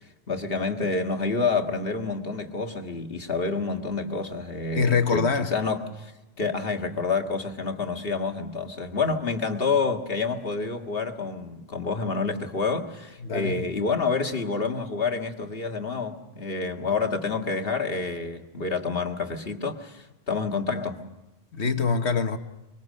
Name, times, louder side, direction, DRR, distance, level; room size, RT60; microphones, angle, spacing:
voice 1, 0.3-6.1 6.4-21.0, left 4 dB, 55° left, 2.0 m, -28 dB
voice 2, 4.8-5.5 13.2-13.6 21.5-22.4, left 5 dB, 75° left, 1.7 m, -24 dB
24.5 x 24.0 x 6.5 m
omnidirectional pair, 1.1 m